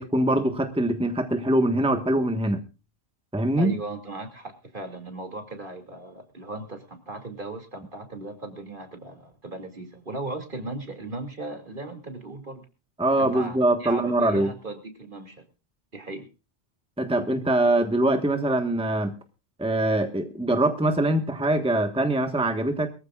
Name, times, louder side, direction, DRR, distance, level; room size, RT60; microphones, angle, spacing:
voice 1, 0.0-2.6 3.3-3.7 13.0-14.5 17.0-19.2 19.6-22.9, right 1 dB, 5° right, 6 dB, 1.4 m, -23 dB
voice 2, 3.6-12.7 13.2-15.4 15.9-16.3, right 2 dB, 45° right, 5 dB, 2.8 m, -37 dB
22.5 x 14.5 x 2.4 m, 0.31 s
omnidirectional pair, 1.2 m